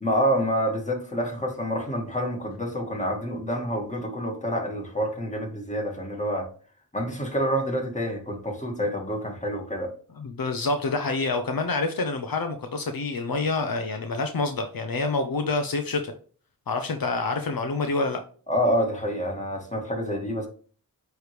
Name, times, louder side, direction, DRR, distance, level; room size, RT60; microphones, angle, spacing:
voice 1, 0.0-6.5 6.9-9.9 18.5-20.5, equal, 20° left, 1 dB, 2.0 m, -27 dB
voice 2, 10.1-16.1 16.7-18.2, left 3 dB, 70° left, 6 dB, 0.8 m, -27 dB
9.2 x 3.2 x 3.3 m, 0.42 s
wide cardioid pair, 60°, 37 cm